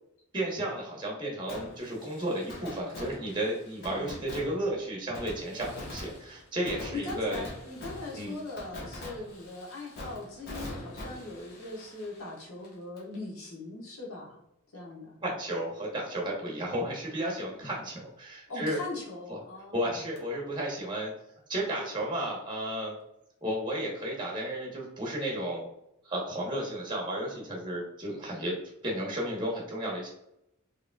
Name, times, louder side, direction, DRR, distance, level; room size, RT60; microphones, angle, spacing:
voice 1, 0.3-7.4 8.1-8.3 15.2-18.8 19.3-19.4 19.7-21.1 21.5-22.9 23.4-25.7 26.0-28.6 28.8-30.1, right 1 dB, 20° right, -2 dB, 0.9 m, -33 dB
Fireworks, 1.5-13.2 13.4-13.5 20.2-20.3, left 1 dB, 45° left, 1.1 m, -44 dB
voice 2, 6.9-14.4 14.7-15.1 18.5-20.0, left 2 dB, 75° left, -3 dB, 1.2 m, -40 dB
4.8 x 3.1 x 2.2 m, 0.81 s
head